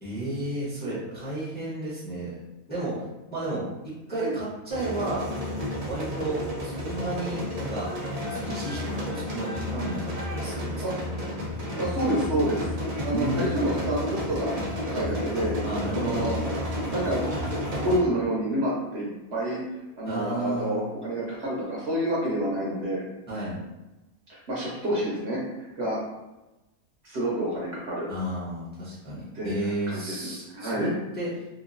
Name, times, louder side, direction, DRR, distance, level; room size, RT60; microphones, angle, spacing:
voice 1, 0.0-2.4 2.7-3.0 3.3-5.3 5.9-7.9 8.3-11.0 13.1-13.6 15.6-16.3 20.0-20.9 23.3-23.6 28.1-31.3, right 1 dB, 10° left, -8 dB, 0.7 m, -32 dB
sound 1, 4.7-18.0, left 1 dB, 80° right, 0.3 m, -31 dB
voice 2, 11.8-12.7 13.0-14.5 14.9-15.5 15.9-16.4 16.9-17.2 17.7-19.6 20.0-23.0 24.5-26.0 27.0-28.1 29.3-30.1 30.5-30.9, right 1 dB, 55° right, -5 dB, 0.9 m, -28 dB
2.9 x 2.3 x 2.5 m, 1.0 s
omnidirectional pair, 1.5 m